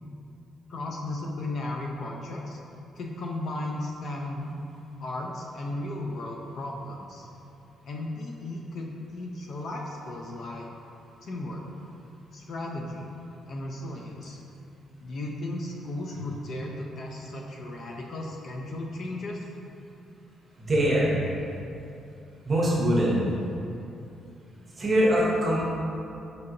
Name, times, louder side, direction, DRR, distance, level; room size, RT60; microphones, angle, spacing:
voice 1, 0.7-2.6 3.0-4.5 5.0-7.3 7.8-10.7 11.2-11.6 12.3-13.1 13.5-14.4 15.0-19.4, left 2 dB, 40° left, 0 dB, 0.3 m, -35 dB
voice 2, 20.6-21.1 22.5-23.2 24.8-25.8, equal, 25° right, -6 dB, 0.7 m, -23 dB
5.1 x 2.8 x 2.5 m, 2.7 s
cardioid pair, 180°, 0 cm